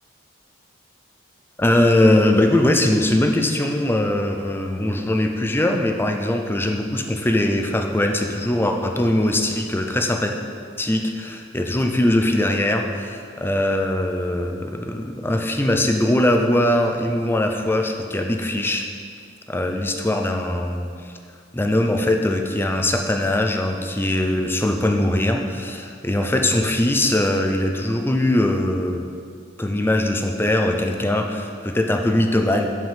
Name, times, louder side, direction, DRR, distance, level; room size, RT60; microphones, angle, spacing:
voice 1, 1.6-10.4 10.8-18.8 19.5-21.1 21.5-29.0 29.6-32.7, left 1 dB, 10° left, 4 dB, 0.5 m, -21 dB
7.9 x 5.3 x 5.8 m, 2.2 s
head